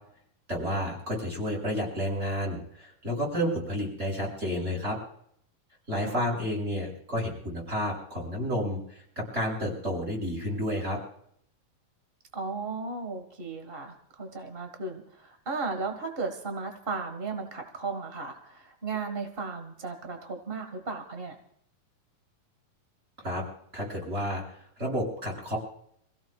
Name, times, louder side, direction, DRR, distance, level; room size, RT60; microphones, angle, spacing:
voice 1, 0.5-5.0 5.9-8.8 9.2-11.0 23.2-23.4 23.7-24.4 24.8-25.6, equal, 20° right, -2 dB, 7.0 m, -30 dB
voice 2, 12.3-21.4, right 4 dB, 60° right, 5 dB, 0.5 m, -35 dB
27.5 x 16.5 x 2.4 m, 0.67 s
omnidirectional pair, 4.0 m